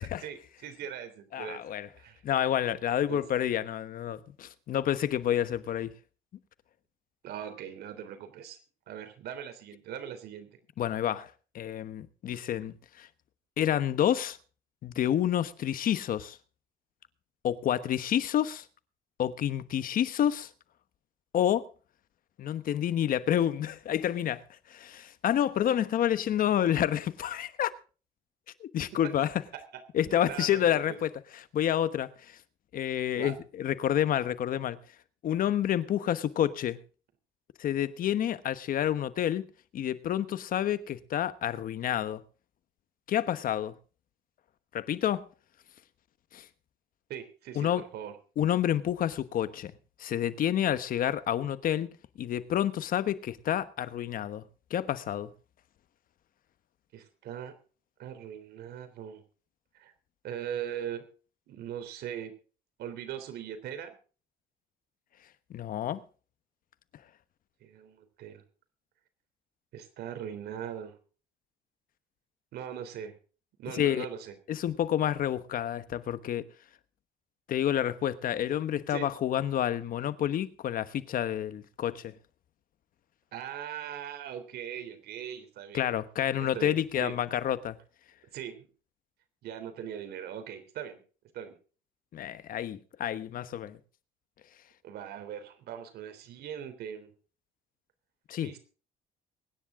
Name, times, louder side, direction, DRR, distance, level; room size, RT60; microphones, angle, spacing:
voice 1, 0.0-1.6 2.0-2.2 3.1-3.2 7.2-8.6 8.9-10.5 29.5-29.6 30.0-31.0 33.2-33.4 47.1-48.1 56.9-57.5 58.0-59.2 59.7-59.9 60.2-61.0 61.5-62.3 62.8-63.9 67.6-68.4 69.7-71.0 72.5-73.2 73.6-74.3 78.9-79.1 83.3-85.9 86.5-87.2 88.3-88.7 89.4-91.0 91.3-91.6 94.8-97.1 98.4-98.6, right 9 dB, 70° right, 3.4 m, -40 dB
voice 2, 1.3-1.9 2.2-5.9 10.8-11.3 11.5-13.1 13.6-14.4 14.8-16.4 17.4-18.6 19.2-20.5 21.3-21.7 22.4-24.4 24.7-27.7 28.6-29.3 29.9-32.4 32.7-34.8 35.2-36.8 37.6-39.5 39.7-42.2 43.1-43.7 44.7-45.3 46.3-46.4 47.6-47.8 48.4-49.7 50.0-51.9 52.2-54.4 54.7-55.3 65.5-66.0 73.7-74.1 74.5-76.4 77.5-82.1 85.7-87.8 92.1-93.8 98.3-98.6, left 10 dB, 55° left, 1.2 m, -29 dB
23.5 x 10.0 x 3.7 m
cardioid pair, 110°, 17 cm